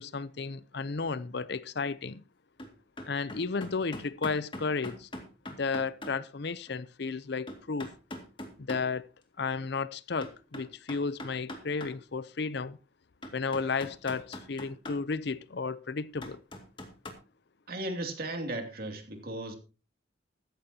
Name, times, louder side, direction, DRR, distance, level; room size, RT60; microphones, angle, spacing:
voice 1, 0.0-2.2 3.1-5.1 5.6-7.9 8.7-9.1 9.4-12.8 13.3-16.4, left 4 dB, 55° left, 0.6 m, -33 dB
sound 1, 2.6-2.7 3.0-6.2 6.7-6.8 7.5-8.8 10.2-11.9 12.6-12.7 13.2-15.0 16.2-17.1, left 1 dB, 25° left, 2.2 m, -41 dB
voice 2, 17.7-19.6, right 1 dB, 50° right, 2.7 m, -36 dB
14.5 x 14.5 x 2.8 m
head